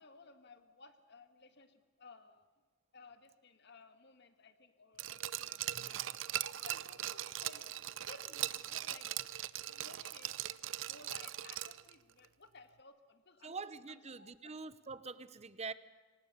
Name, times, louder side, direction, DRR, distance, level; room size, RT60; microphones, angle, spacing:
voice 1, 0.0-2.4 2.9-6.2 6.6-7.7 8.0-9.1 9.7-10.3 10.8-14.5, left 3 dB, 60° left, 9 dB, 1.8 m, -58 dB
Glass, 5.0-11.9 12.2-12.3, right 12 dB, 70° right, 0.6 m, -40 dB
voice 2, 13.4-15.7, right 4 dB, 35° right, 15 dB, 0.9 m, -45 dB
24.5 x 19.0 x 6.8 m, 1.4 s
head